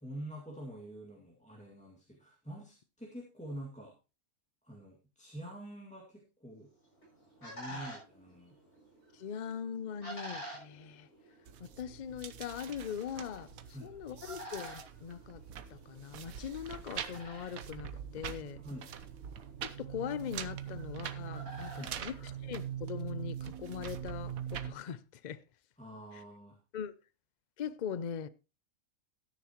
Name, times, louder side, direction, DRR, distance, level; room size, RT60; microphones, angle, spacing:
voice 1, 0.0-4.0 4.6-6.7 7.4-8.6 13.7-13.9 18.6-18.9 21.7-22.0 25.8-26.6, right 1 dB, 5° left, 2.1 m, -46 dB
sound 1, 6.7-23.0, equal, 75° left, 7.4 m, -51 dB
voice 2, 9.1-11.1 11.8-13.5 13.8-15.4 15.7-18.6 19.6-25.4 26.1-26.2 26.7-26.9 27.6-28.3, left 8 dB, 50° left, 0.5 m, -41 dB
sound 2, 11.5-24.7, right 9 dB, 70° right, 1.3 m, -43 dB
13.5 x 10.0 x 3.0 m
omnidirectional pair, 1.6 m